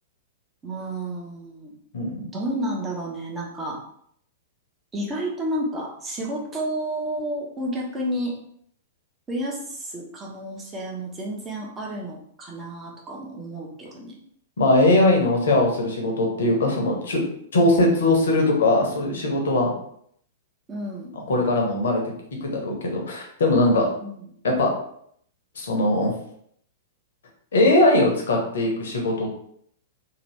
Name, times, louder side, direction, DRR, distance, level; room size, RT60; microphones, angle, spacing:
voice 1, 0.6-1.7 2.3-3.8 4.9-8.3 9.3-14.1 20.7-21.1 24.0-24.2, right 1 dB, 20° right, -2 dB, 0.8 m, -31 dB
voice 2, 1.9-2.3 14.6-17.2 17.5-19.7 21.3-22.0 22.4-23.9 24.4-24.7 25.6-26.1 27.5-29.3, left 2 dB, 60° left, 0 dB, 0.9 m, -20 dB
2.8 x 2.5 x 3.2 m, 0.68 s
figure-of-eight pair, 100°, 0 cm